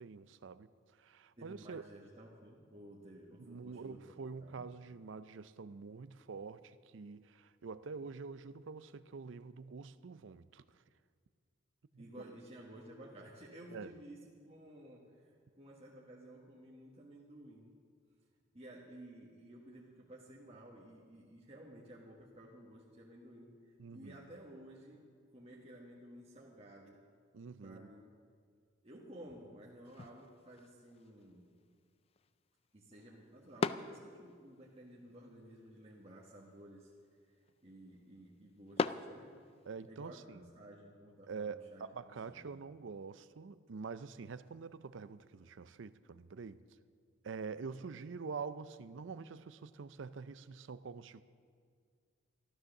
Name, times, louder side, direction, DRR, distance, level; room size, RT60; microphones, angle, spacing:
voice 1, 0.0-1.8 3.4-10.6 11.9-12.1 13.7-13.9 23.8-24.2 27.3-27.9 39.7-40.4 41.3-46.6 47.2-51.2, right 5 dB, 70° right, 0.5 m, -46 dB
voice 2, 1.4-4.1 4.4-4.6 12.0-17.7 18.5-25.0 25.3-27.0 27.6-28.1 28.8-31.5 32.7-36.9 37.6-39.3 39.9-42.5, right 1 dB, 30° right, 1.5 m, -54 dB
sound 1, 29.8-39.9, left 4 dB, 30° left, 0.3 m, -44 dB
13.0 x 12.5 x 6.5 m
head